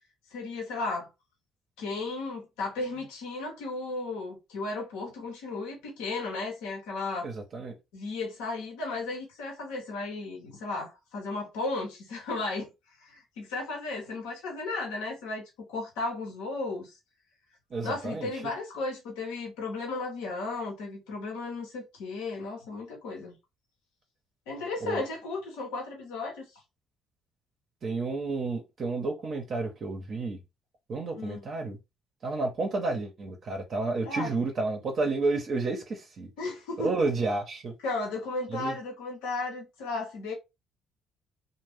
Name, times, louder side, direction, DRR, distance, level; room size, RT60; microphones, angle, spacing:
voice 1, 0.3-1.1 1.8-7.3 7.9-12.7 13.0-16.9 17.8-23.3 24.5-26.5 31.1-31.5 34.0-34.3 36.4-37.0 37.8-40.3, left 3 dB, 80° left, 0.8 m, -35 dB
voice 2, 7.2-7.7 17.7-18.3 24.8-25.0 27.8-30.4 30.9-31.8 32.2-36.3 36.8-37.7 38.5-38.8, right 3 dB, 50° right, 0.7 m, -31 dB
2.5 x 2.1 x 3.3 m
hypercardioid pair, 55°, 0 cm